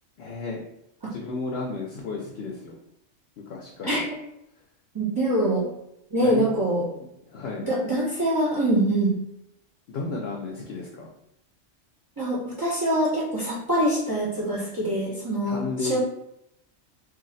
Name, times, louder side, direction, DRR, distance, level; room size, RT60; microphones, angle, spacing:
voice 1, 0.2-0.6 1.1-2.8 3.5-4.0 6.2-6.5 7.3-7.7 9.9-11.1 15.4-16.0, left 3 dB, 65° left, -2 dB, 0.7 m, -33 dB
voice 2, 4.9-5.7 6.1-6.8 7.6-9.1 12.2-16.0, right 1 dB, 30° right, -8 dB, 0.4 m, -24 dB
2.6 x 2.0 x 3.9 m, 0.80 s
omnidirectional pair, 1.3 m